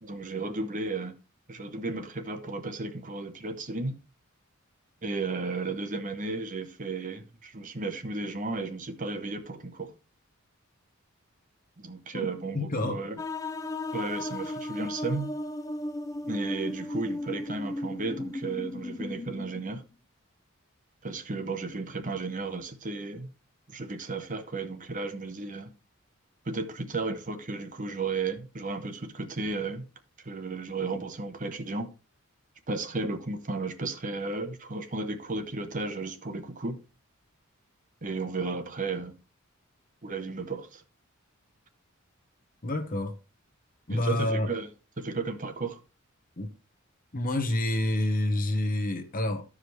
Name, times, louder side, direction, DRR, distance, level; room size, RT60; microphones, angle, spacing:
voice 1, 0.0-1.1 1.5-4.0 5.0-9.9 11.8-13.2 13.9-15.3 16.3-19.8 21.0-23.3 23.7-25.7 26.4-29.9 30.2-31.9 32.7-36.8 38.0-39.1 40.0-40.8 43.9-44.7 45.0-45.8, right 3 dB, 40° right, 1.0 m, -34 dB
voice 2, 12.5-13.0 42.6-43.1 43.9-44.5 46.4-46.5 47.1-49.4, left 1 dB, 40° left, 1.0 m, -28 dB
sound 1, 13.2-19.9, left 1 dB, 15° left, 0.3 m, -35 dB
14.0 x 4.9 x 3.1 m
head